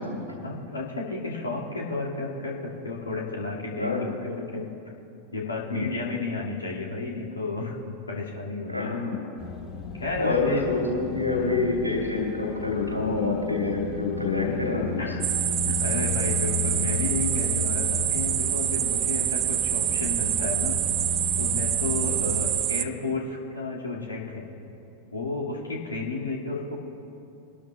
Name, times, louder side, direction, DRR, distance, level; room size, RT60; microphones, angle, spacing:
voice 1, 0.3-3.9 4.2-4.7 5.3-8.9 9.9-10.6 11.4-11.6 15.0-15.3 15.6-20.8 21.4-24.5 25.1-26.8, left 3 dB, 75° left, -3 dB, 2.1 m, -32 dB
voice 2, 3.8-4.2 5.7-5.9 8.7-9.3 10.2-15.1, left 3 dB, 90° right, 0 dB, 2.7 m, -26 dB
sound 1, 9.4-22.6, left 6 dB, 30° left, 0.9 m, -35 dB
sound 2, 15.2-22.8, right 12 dB, 35° right, 0.4 m, -26 dB
23.0 x 12.0 x 2.3 m, 2.7 s
figure-of-eight pair, 90°, 0 cm